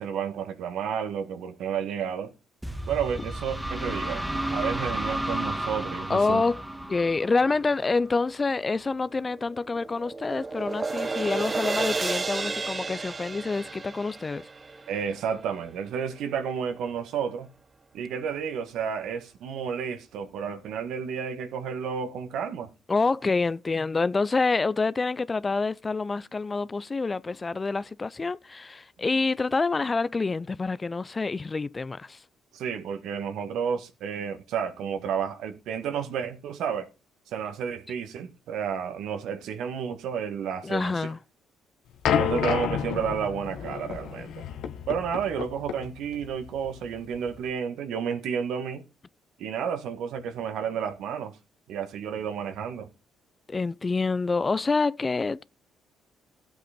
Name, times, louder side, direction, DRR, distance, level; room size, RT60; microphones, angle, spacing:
voice 1, 0.0-2.3 2.9-6.4 14.9-17.5 17.9-22.7 32.5-36.9 37.3-41.1 42.2-44.4 44.9-48.8 49.4-51.4 51.7-52.9, right 7 dB, 75° right, 1.7 m, -31 dB
sound 1, 2.6-8.3, right 1 dB, 10° right, 1.6 m, -32 dB
voice 2, 6.1-6.6 6.9-14.5 22.9-32.2 40.6-41.2 53.5-55.4, left 3 dB, 30° left, 0.5 m, -27 dB
sound 2, 9.2-15.6, right 3 dB, 30° right, 0.7 m, -32 dB
sound 3, 42.0-47.5, left 8 dB, 75° left, 1.4 m, -30 dB
13.0 x 8.1 x 5.1 m
supercardioid pair, 65°, 0 cm